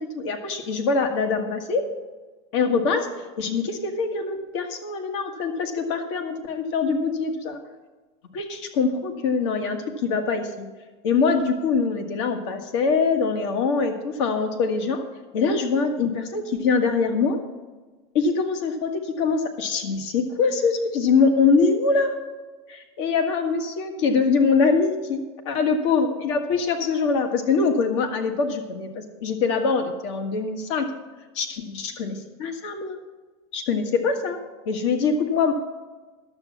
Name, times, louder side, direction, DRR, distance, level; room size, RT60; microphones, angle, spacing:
voice 1, 0.1-1.8 2.5-3.1 3.4-7.6 8.3-10.7 11.0-15.0 15.3-17.4 18.1-22.2 22.7-30.9 31.3-33.0 33.5-34.4 34.6-35.5, left 4 dB, 75° left, 5 dB, 1.6 m, -23 dB
11.5 x 7.4 x 7.0 m, 1.3 s
supercardioid pair, 130°, 15 cm